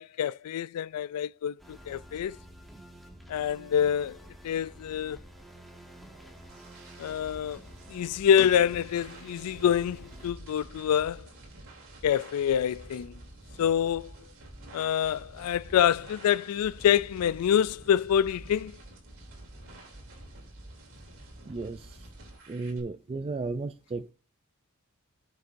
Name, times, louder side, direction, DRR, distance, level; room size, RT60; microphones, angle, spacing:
voice 1, 0.0-2.4 3.3-4.2 4.4-5.2 7.0-7.6 7.9-11.3 12.0-13.2 13.6-14.1 14.7-18.7, left 9 dB, 80° left, 0.3 m, -26 dB
sound 1, 1.6-10.3, right 1 dB, ahead, 1.8 m, -50 dB
sound 2, 5.8-22.8, right 1 dB, 65° right, 3.0 m, -49 dB
voice 2, 21.5-22.1 22.5-24.1, right 3 dB, 25° right, 0.3 m, -34 dB
18.5 x 6.5 x 2.6 m
head